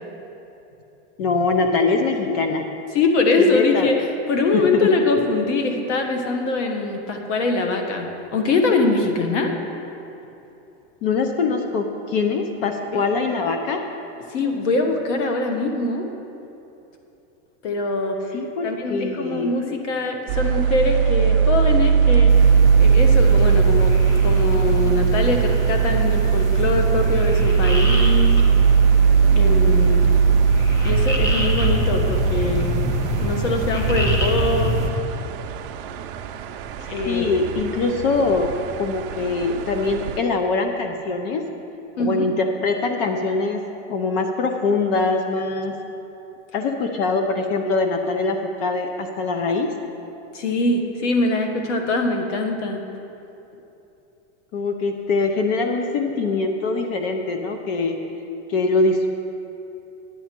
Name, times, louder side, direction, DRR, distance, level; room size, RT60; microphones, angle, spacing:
voice 1, 1.2-2.6 3.4-3.9 4.5-4.9 11.0-13.9 18.3-19.5 37.1-38.5 38.8-41.5 42.0-43.6 43.9-45.8 46.5-49.7 54.5-58.0 58.5-59.1, left 3 dB, 55° left, 5 dB, 0.7 m, -23 dB
voice 2, 2.9-4.0 4.3-9.5 12.9-13.0 14.3-16.1 17.6-18.2 18.6-22.5 22.8-24.0 24.2-28.3 29.3-30.0 30.8-32.7 33.2-34.8 36.9-37.2 42.0-42.3 50.3-52.8, left 3 dB, 85° left, 4 dB, 1.3 m, -23 dB
sound 1, 20.3-40.2, right 6 dB, 50° right, 0.5 m, -19 dB
sound 2, 22.3-34.9, right 1 dB, 10° left, 0.6 m, -26 dB
10.0 x 9.6 x 4.5 m, 2.9 s
supercardioid pair, 175°, 35 cm